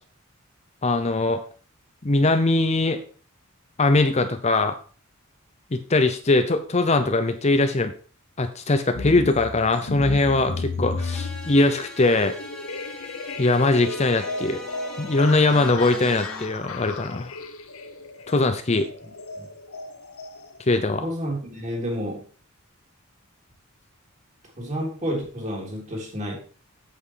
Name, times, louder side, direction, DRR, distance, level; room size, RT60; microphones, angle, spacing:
voice 1, 0.8-1.4 2.0-3.0 3.8-4.8 5.7-7.9 8.4-12.3 13.4-14.6 15.0-17.3 18.3-18.9 20.6-21.0, left 2 dB, 30° left, 8 dB, 0.7 m, -21 dB
sound 1, 8.9-20.8, left 3 dB, 80° left, 1.1 m, -34 dB
sound 2, 11.0-16.5, left 1 dB, 5° left, 1.8 m, -41 dB
voice 2, 19.0-19.5 21.0-22.3 24.6-26.4, equal, 35° right, -1 dB, 3.6 m, -30 dB
8.5 x 8.1 x 4.7 m, 0.41 s
head